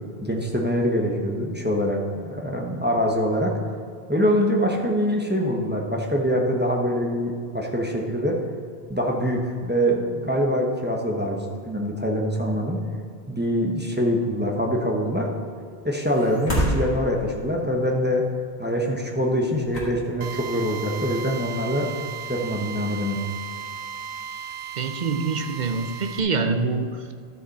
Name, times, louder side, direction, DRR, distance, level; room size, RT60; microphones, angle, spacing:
voice 1, 0.2-3.5 4.1-8.4 8.9-12.8 13.3-15.3 15.8-18.2 18.6-21.9 22.3-23.2, equal, 10° right, 0 dB, 0.9 m, -24 dB
sound 1, 16.0-17.6 19.2-19.3 19.6-20.5 21.0-21.1, equal, 75° left, 2.2 m, -28 dB
Drill, 20.2-26.2, right 7 dB, 80° right, 0.8 m, -36 dB
voice 2, 24.8-27.0, right 4 dB, 50° right, 7 dB, 0.8 m, -25 dB
12.0 x 6.7 x 4.1 m, 2.2 s
omnidirectional pair, 1.1 m